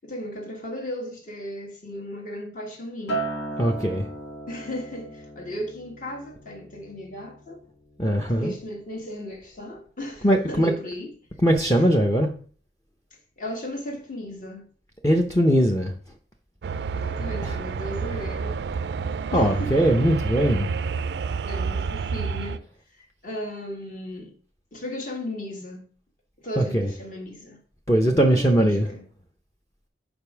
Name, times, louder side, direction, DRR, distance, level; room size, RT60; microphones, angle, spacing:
voice 1, 0.0-3.3 4.5-7.6 8.3-11.1 13.4-14.7 16.9-18.6 19.3-19.7 21.4-22.7 23.2-24.3 24.7-25.9 26.4-27.6 28.2-29.0, left 1 dB, 50° left, 1.7 m, -35 dB
Acoustic guitar, 3.1-7.5 7.9-8.3, right 3 dB, 75° left, 1.5 m, -36 dB
voice 2, 3.6-4.1 8.0-8.5 10.2-10.7 11.4-12.3 15.0-15.9 17.4-17.6 19.3-20.7 26.6-26.9 27.9-28.9, equal, 20° left, 0.6 m, -20 dB
sound 1, 16.6-22.6, right 5 dB, 70° right, 0.3 m, -29 dB
5.2 x 4.5 x 5.9 m
head